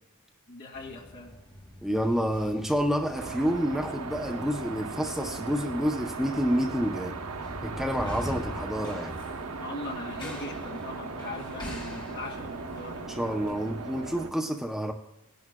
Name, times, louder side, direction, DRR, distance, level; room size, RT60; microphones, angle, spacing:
voice 1, 0.5-1.4 9.6-13.0, left 2 dB, 55° left, 2.3 m, -40 dB
sound 1, 0.7-13.5, equal, 20° left, 4.8 m, -44 dB
voice 2, 1.8-7.2 7.6-9.2 13.1-14.9, equal, ahead, 0.6 m, -28 dB
sound 2, 3.1-14.3, right 4 dB, 80° right, 0.9 m, -38 dB
19.0 x 11.0 x 2.2 m
head